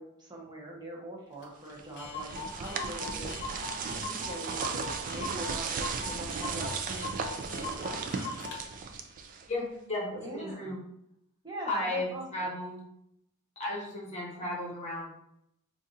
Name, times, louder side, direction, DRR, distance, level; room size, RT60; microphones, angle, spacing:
voice 1, 0.0-3.3 3.8-8.3 10.2-10.7 11.4-12.5, right 1 dB, 20° right, -2 dB, 0.8 m, -42 dB
Clock, 1.4-1.5 1.7-1.8 2.0-8.6, left 3 dB, 55° left, 0.7 m, -41 dB
sound 1, 1.8-9.6, right 5 dB, 40° right, 0.3 m, -36 dB
voice 2, 9.5-10.8 11.7-12.9 13.6-15.1, left 1 dB, 30° left, -4 dB, 1.1 m, -34 dB
2.5 x 2.5 x 4.0 m, 0.78 s
head